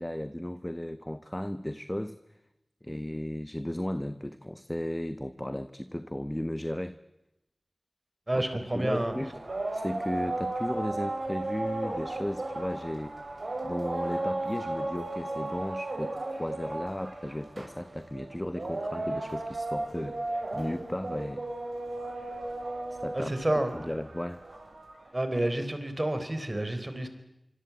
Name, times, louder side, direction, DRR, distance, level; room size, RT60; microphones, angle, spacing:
voice 1, 0.0-2.2 2.8-7.0 8.3-9.4 9.7-13.2 13.6-20.2 20.5-21.4 23.0-24.4, left 1 dB, 15° left, 11 dB, 1.0 m, -35 dB
voice 2, 8.3-9.1 23.1-23.7 25.1-27.1, right 1 dB, 30° right, 8 dB, 4.1 m, -29 dB
sound 1, 8.7-25.1, right 2 dB, 65° right, 7.1 m, -35 dB
25.5 x 25.0 x 8.6 m, 0.91 s
wide cardioid pair, 65°, 0 cm